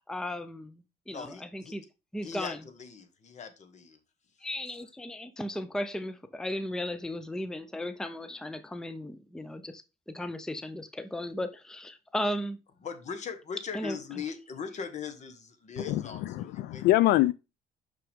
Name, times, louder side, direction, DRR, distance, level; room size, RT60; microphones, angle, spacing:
voice 1, 0.0-1.8 2.1-2.6 4.4-12.6 13.7-14.0, left 1 dB, 5° left, 0.6 m, -36 dB
voice 2, 1.1-1.7 2.2-4.0 4.4-4.5 12.8-16.8, left 6 dB, 45° left, 1.5 m, -40 dB
voice 3, 15.9-17.3, left 16 dB, 80° left, 0.4 m, -24 dB
6.1 x 5.9 x 3.6 m
cardioid pair, 110°, 17 cm